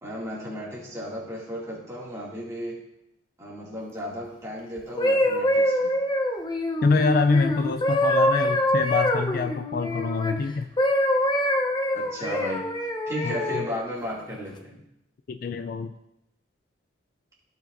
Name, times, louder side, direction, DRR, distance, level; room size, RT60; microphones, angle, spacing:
voice 1, 0.0-2.8 3.4-5.9 11.9-12.7 13.1-14.8, equal, 15° right, -6 dB, 2.3 m, -34 dB
sound 1, 4.8-10.3 10.8-13.6 14.3-14.6, left 1 dB, 20° left, 0.7 m, -24 dB
voice 2, 6.8-10.7 13.2-13.6 15.3-15.9, left 4 dB, 45° left, 9 dB, 0.3 m, -25 dB
16.0 x 5.4 x 2.6 m, 0.85 s
head